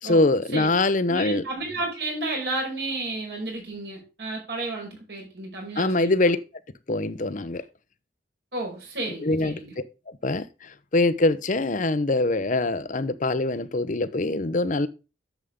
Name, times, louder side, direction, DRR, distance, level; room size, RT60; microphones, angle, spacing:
voice 1, 0.0-1.4 5.8-6.4 6.9-7.6 9.2-9.6 10.2-10.4 10.9-14.9, left 2 dB, 45° left, 0.7 m, -23 dB
voice 2, 1.1-6.3 8.5-9.7, right 2 dB, 65° right, 5.6 m, -32 dB
10.0 x 7.4 x 3.6 m
head